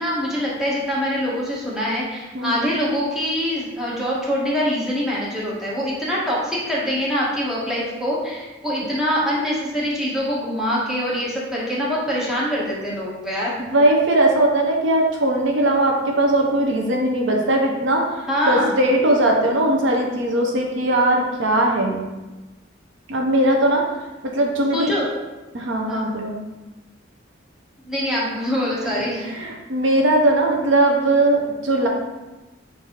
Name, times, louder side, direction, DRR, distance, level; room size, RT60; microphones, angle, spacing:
voice 1, 0.0-13.6 18.3-18.8 24.7-25.1 25.9-26.1 27.8-29.3, equal, 5° right, -6 dB, 1.0 m, -24 dB
voice 2, 2.3-2.7 13.6-22.1 23.1-23.8 24.2-24.9 25.5-26.3 29.3-31.9, right 1 dB, 75° right, 1 dB, 0.7 m, -19 dB
6.6 x 2.6 x 2.9 m, 1.1 s
head